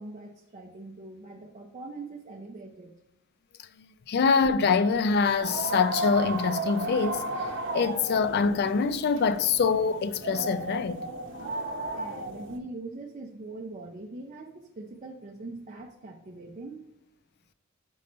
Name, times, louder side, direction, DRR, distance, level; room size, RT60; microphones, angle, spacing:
voice 1, 0.0-2.9 11.9-16.8, right 2 dB, 35° right, 0.5 m, -42 dB
voice 2, 4.1-7.3 7.7-11.0 11.3-11.5, left 5 dB, 55° left, 0.4 m, -24 dB
sound 1, 5.4-12.6, right 2 dB, 65° right, 0.8 m, -34 dB
5.4 x 5.3 x 4.2 m
head